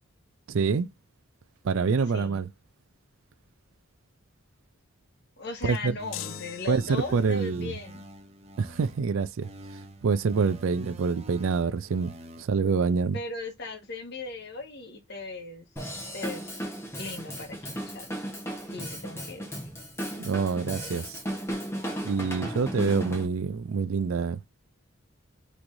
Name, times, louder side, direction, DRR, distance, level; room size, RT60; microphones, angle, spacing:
voice 1, 0.5-0.9 1.6-2.5 5.6-6.0 6.7-7.7 8.6-9.5 10.0-13.2 20.2-21.2 22.0-24.4, right 5 dB, 75° right, 0.4 m, -26 dB
voice 2, 1.8-2.4 5.4-8.1 13.1-15.7 16.1-16.5 17.0-18.1 18.7-19.5, left 2 dB, 50° left, 1.3 m, -38 dB
sound 1, 6.0-9.0 9.4-12.4, right 2 dB, 30° right, 0.6 m, -46 dB
sound 2, 6.1-7.4, left 13 dB, 70° left, 0.3 m, -41 dB
Drum kit / Drum, 15.8-23.3, equal, 10° left, 1.1 m, -35 dB
6.0 x 3.2 x 2.6 m
head